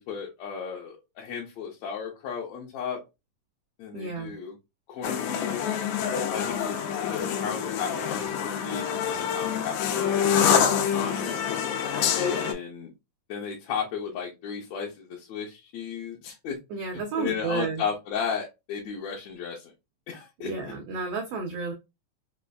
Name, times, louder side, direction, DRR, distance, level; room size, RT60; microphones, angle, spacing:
voice 1, 0.0-3.0 3.8-4.6 4.9-5.7 6.3-11.3 12.1-12.9 13.3-16.6 16.9-19.7 20.1-20.7, left 7 dB, 70° left, 1.8 m, -35 dB
voice 2, 3.9-4.3 16.7-17.8 20.4-21.7, right 5 dB, 80° right, 1.4 m, -31 dB
sound 1, 5.0-12.5, left 8 dB, 90° left, 2.2 m, -26 dB
5.1 x 2.4 x 2.3 m
omnidirectional pair, 3.6 m